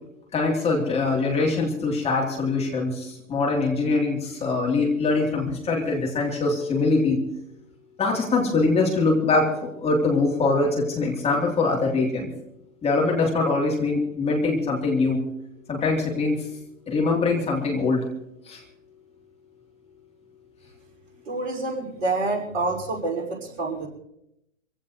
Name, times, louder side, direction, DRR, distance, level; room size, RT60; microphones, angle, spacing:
voice 1, 0.3-7.2 8.0-9.5 9.8-12.3 12.8-15.2 15.7-16.4 16.9-18.0 18.5-18.6, left 3 dB, 15° left, -1 dB, 3.4 m, -23 dB
voice 2, 21.3-23.9, right 3 dB, 50° right, -1 dB, 5.7 m, -27 dB
26.0 x 16.5 x 3.2 m, 0.79 s
figure-of-eight pair, 115°, 40 cm